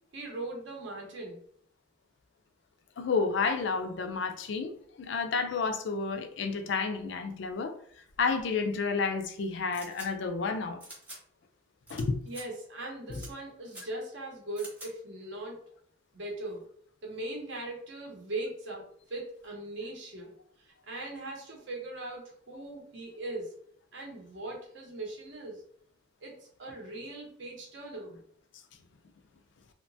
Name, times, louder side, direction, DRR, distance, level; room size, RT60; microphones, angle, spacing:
voice 1, 0.1-1.4 12.3-15.6 16.1-16.6 17.0-23.5 23.9-25.6 26.2-28.2, right 2 dB, 60° right, 0.7 m, -40 dB
voice 2, 3.0-7.7 8.2-10.8 11.9-12.2, left 4 dB, 60° left, 0.4 m, -30 dB
sound 1, 9.7-10.1 10.8-11.2 11.9-12.0 12.3-12.4 13.1-13.3 13.7-13.8 14.6-14.9, right 1 dB, 10° right, 0.7 m, -46 dB
2.8 x 2.1 x 2.6 m
head